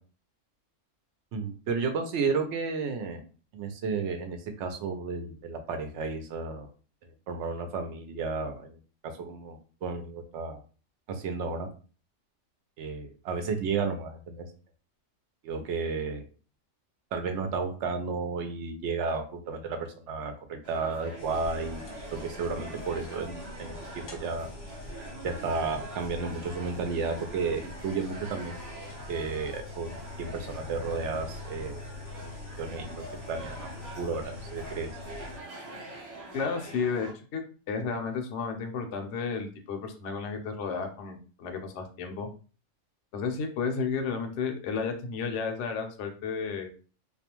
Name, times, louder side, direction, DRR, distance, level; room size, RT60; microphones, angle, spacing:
voice 1, 1.3-3.2 3.5-6.7 7.3-8.8 9.2-10.6 11.1-11.7 12.8-14.5 15.4-16.2 17.1-24.5 25.2-28.7 29.1-31.8 32.2-32.3 32.6-33.7 34.0-34.9, right 4 dB, 70° right, 6 dB, 0.8 m, -33 dB
sound 1, 20.6-37.1, right 1 dB, 25° right, 0.4 m, -44 dB
sound 2, 21.2-35.4, left 3 dB, 55° left, 0.5 m, -44 dB
voice 2, 36.3-37.4 37.7-42.3 43.1-46.7, left 5 dB, 70° left, 4 dB, 0.9 m, -32 dB
2.4 x 2.2 x 2.8 m, 0.38 s
omnidirectional pair, 1.3 m